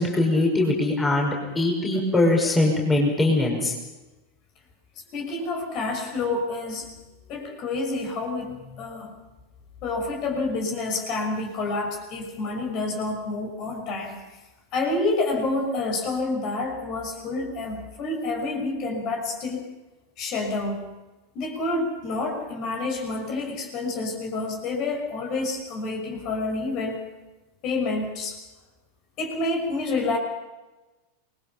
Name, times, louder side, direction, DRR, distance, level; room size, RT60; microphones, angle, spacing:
voice 1, 0.0-3.7, left 2 dB, 10° left, 0 dB, 5.6 m, -22 dB
voice 2, 5.1-6.9 7.3-9.1 9.8-14.2 14.7-19.6 20.2-20.9 21.3-27.0 27.6-28.4 29.2-30.2, left 3 dB, 40° left, 3 dB, 6.1 m, -28 dB
28.5 x 21.5 x 5.8 m, 1.1 s
figure-of-eight pair, 90°, 0 cm